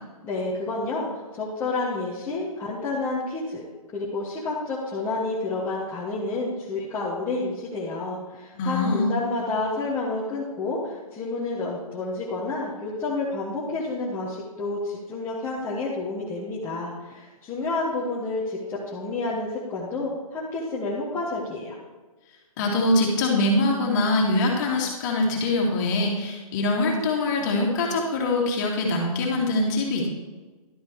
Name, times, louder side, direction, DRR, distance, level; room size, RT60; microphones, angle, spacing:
voice 1, 0.2-3.6 3.9-21.8, left 3 dB, 10° left, -7 dB, 1.4 m, -29 dB
voice 2, 8.5-9.2 22.6-30.0, left 2 dB, 30° left, -1 dB, 2.4 m, -23 dB
12.0 x 7.4 x 4.7 m, 1.3 s
hypercardioid pair, 155°, 19 cm